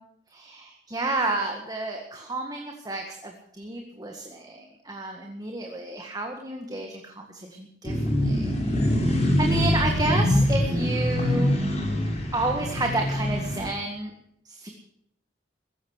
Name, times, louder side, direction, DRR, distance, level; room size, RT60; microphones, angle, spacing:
voice 1, 0.3-7.9 8.2-11.6 12.3-14.1 14.5-14.7, right 2 dB, 20° right, 2 dB, 1.8 m, -31 dB
sound 1, 7.8-13.7, left 1 dB, 40° left, 4.7 m, -24 dB
16.5 x 13.5 x 6.6 m, 0.74 s
head